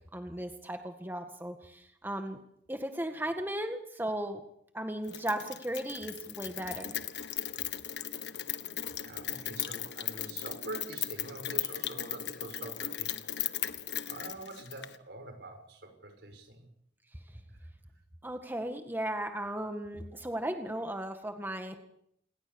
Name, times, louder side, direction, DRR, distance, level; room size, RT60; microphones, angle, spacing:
voice 1, 0.1-2.4 2.7-4.4 4.7-6.9 18.2-21.8, right 1 dB, 10° right, 6 dB, 1.7 m, -36 dB
Rain, 5.1-15.0, left 11 dB, 90° left, 1.5 m, -37 dB
voice 2, 9.0-13.2 14.1-16.7 17.6-17.7, right 2 dB, 70° right, 6 dB, 6.4 m, -45 dB
28.5 x 20.5 x 7.1 m, 0.72 s
head